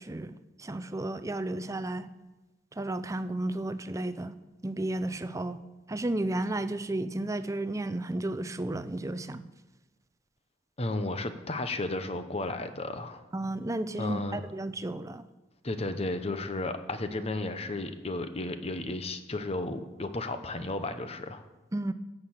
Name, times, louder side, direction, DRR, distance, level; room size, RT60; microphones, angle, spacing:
voice 1, 0.0-2.1 2.8-4.4 4.6-5.6 5.9-9.5 13.3-15.3 21.7-21.9, right 2 dB, 20° right, 12 dB, 0.5 m, -33 dB
voice 2, 10.8-13.2 14.0-14.4 15.6-21.4, left 2 dB, 35° left, 9 dB, 1.0 m, -33 dB
16.0 x 6.7 x 7.4 m, 1.1 s
head